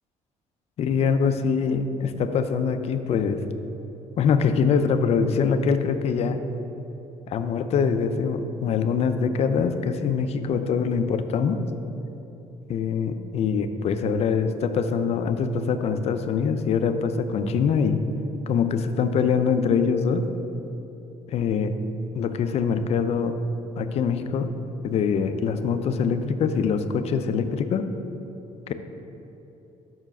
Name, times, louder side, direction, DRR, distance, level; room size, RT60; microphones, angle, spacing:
voice 1, 0.8-3.4 4.2-6.4 7.3-11.6 12.7-18.0 18.5-20.3 21.3-21.7 22.1-23.4 23.8-24.5 24.8-27.9 28.7-28.8, left 6 dB, 55° left, 9 dB, 0.4 m, -24 dB
5.8 x 4.5 x 5.9 m, 3.0 s
cardioid pair, 115°, 13 cm